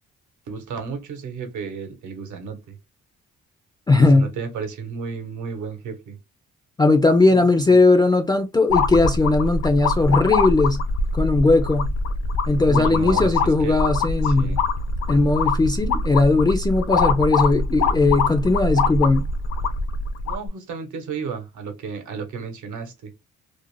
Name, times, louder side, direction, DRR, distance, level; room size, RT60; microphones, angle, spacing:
voice 1, 0.5-2.8 3.9-6.2 7.3-7.4 7.7-7.8 12.6-13.3 13.6-13.8 14.2-14.6 20.2-23.1, right 5 dB, 75° right, 0.9 m, -33 dB
voice 2, 3.9-4.3 6.8-10.8 11.1-11.9 12.5-14.6 15.1-19.3, left 3 dB, 15° left, 0.3 m, -18 dB
sound 1, 8.7-20.5, left 3 dB, 60° left, 0.6 m, -23 dB
2.5 x 2.1 x 3.0 m
cardioid pair, 90°, 30 cm